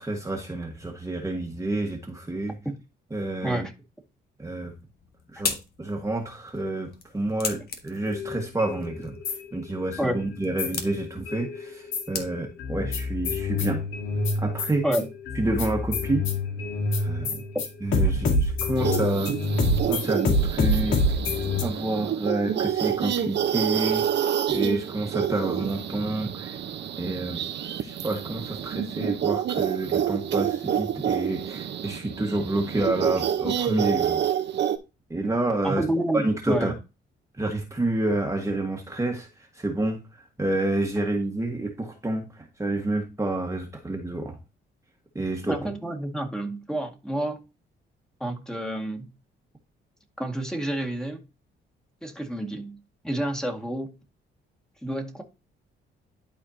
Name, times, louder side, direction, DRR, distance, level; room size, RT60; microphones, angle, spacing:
voice 1, 0.0-2.6 3.1-3.6 4.4-4.7 5.3-13.8 14.3-14.8 15.3-16.3 16.9-17.3 17.8-19.5 19.8-21.0 21.3-24.1 24.5-26.6 27.0-27.4 27.8-34.2 35.1-35.8 36.1-36.7 37.4-44.4 45.1-45.6, right 2 dB, 15° right, 1.6 m, -29 dB
sound 1, 4.8-12.7, left 5 dB, 50° left, 1.7 m, -38 dB
sound 2, 8.1-10.1 10.6-12.2 12.6-21.6, left 2 dB, 85° left, 2.5 m, -27 dB
sound 3, 18.8-34.8, right 9 dB, 60° right, 1.0 m, -28 dB
voice 2, 35.6-36.7 45.5-47.4 48.2-49.1 50.2-51.2 52.0-53.9 54.8-55.2, right 1 dB, 5° left, 1.9 m, -29 dB
12.0 x 4.4 x 2.8 m
cardioid pair, 90°, 20 cm